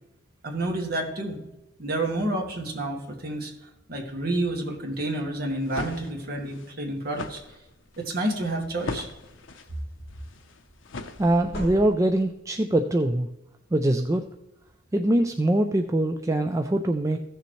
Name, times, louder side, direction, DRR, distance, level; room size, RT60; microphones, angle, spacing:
voice 1, 0.4-1.4 1.8-3.5 3.9-7.4 8.0-9.1, right 1 dB, 50° right, 1 dB, 1.8 m, -29 dB
sound 1, 5.4-11.7, left 3 dB, 80° left, 0.8 m, -40 dB
sound 2, 7.4-7.5 7.9-8.1 8.4-9.5 11.1-12.4, equal, 55° left, 2.8 m, -41 dB
voice 2, 11.2-13.3 13.7-14.2 14.9-17.2, right 1 dB, 15° right, 5 dB, 0.4 m, -23 dB
15.5 x 6.8 x 3.1 m, 0.94 s
head